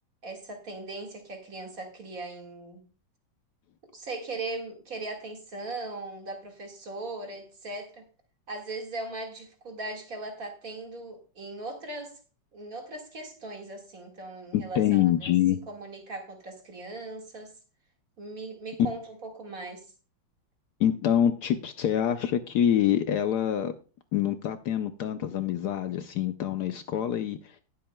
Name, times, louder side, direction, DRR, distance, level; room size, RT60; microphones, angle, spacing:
voice 1, 0.2-2.8 3.9-8.1 8.5-12.2 12.5-15.3 15.7-17.5 18.2-19.8, right 2 dB, 45° right, 2.2 m, -39 dB
voice 2, 14.5-15.6 20.8-23.7 24.1-27.6, left 10 dB, 70° left, 1.1 m, -26 dB
19.0 x 7.7 x 2.2 m
omnidirectional pair, 2.1 m